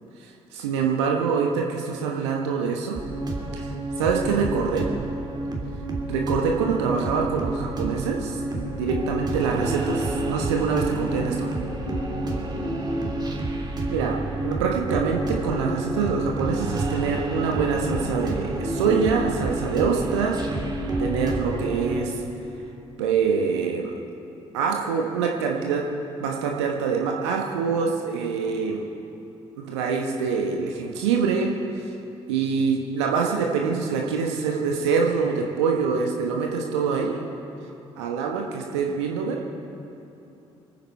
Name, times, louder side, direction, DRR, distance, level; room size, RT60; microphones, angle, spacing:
voice 1, 0.2-3.0 3.5-4.9 6.1-11.6 13.9-14.2 14.4-20.6 21.0-22.2 23.0-23.9 24.5-25.8 26.2-28.8 29.6-31.5 32.3-37.2 38.0-39.4, right 5 dB, 75° right, 0 dB, 1.2 m, -25 dB
sound 1, 2.9-22.0, right 2 dB, 30° right, 3.1 m, -29 dB
27.0 x 9.4 x 4.5 m, 3.0 s
figure-of-eight pair, 45°, 15 cm